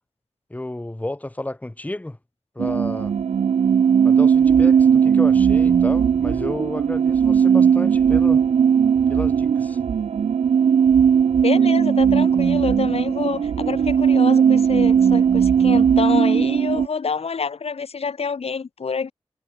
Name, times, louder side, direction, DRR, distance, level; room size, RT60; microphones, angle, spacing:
voice 1, 0.5-2.2 2.5-3.1 4.0-8.4 9.1-9.8, left 1 dB, 15° left, 1.8 m, -31 dB
sound 1, 2.6-16.9, right 7 dB, 85° right, 0.5 m, -17 dB
voice 2, 11.4-19.1, left 5 dB, 75° left, 2.3 m, -27 dB
wide cardioid pair, 80°, 10 cm